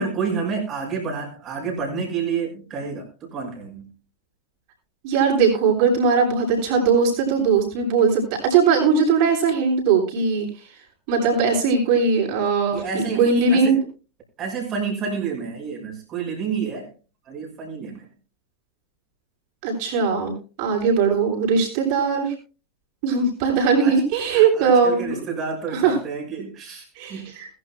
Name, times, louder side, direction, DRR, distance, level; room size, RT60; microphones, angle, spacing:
voice 1, 0.0-3.9 12.7-13.8 14.4-16.9 17.3-18.1 23.8-24.0 24.3-27.3, right 5 dB, 30° right, 0 dB, 6.2 m, -29 dB
voice 2, 5.0-10.5 11.1-13.8 19.6-22.3 23.0-25.1 25.7-26.0 27.0-27.5, right 5 dB, 45° right, -1 dB, 7.8 m, -20 dB
21.0 x 12.0 x 2.2 m, 0.34 s
figure-of-eight pair, 90°, 0 cm